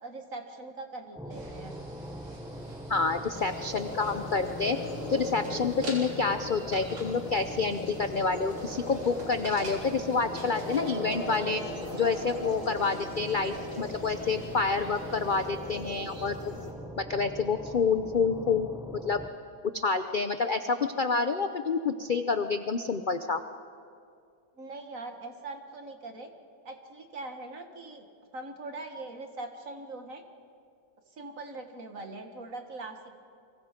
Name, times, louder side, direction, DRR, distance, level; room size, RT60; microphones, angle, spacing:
voice 1, 0.0-1.7 24.6-26.3 26.7-28.0 28.3-30.2 31.2-33.0, right 2 dB, 45° right, 5 dB, 2.1 m, -41 dB
sound 1, 1.1-19.3, equal, 5° right, 0.8 m, -44 dB
sound 2, 1.3-15.5, right 1 dB, 75° right, 4.5 m, -48 dB
voice 2, 2.9-4.8 5.1-16.3 17.0-18.7 19.0-19.2 19.7-23.4, left 4 dB, 70° left, 9 dB, 0.4 m, -28 dB
sound 3, 3.3-16.7, left 1 dB, 40° left, 2.9 m, -39 dB
30.0 x 24.5 x 5.2 m, 2.4 s
omnidirectional pair, 2.0 m